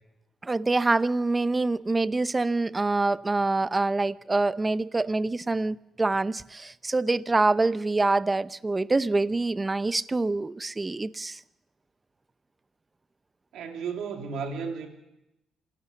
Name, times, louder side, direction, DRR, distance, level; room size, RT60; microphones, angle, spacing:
voice 1, 0.4-11.4, right 3 dB, 20° right, 0.7 m, -25 dB
voice 2, 13.5-14.9, right 5 dB, 75° right, 3.2 m, -33 dB
27.0 x 17.0 x 7.0 m
cardioid pair, 90°, 0 cm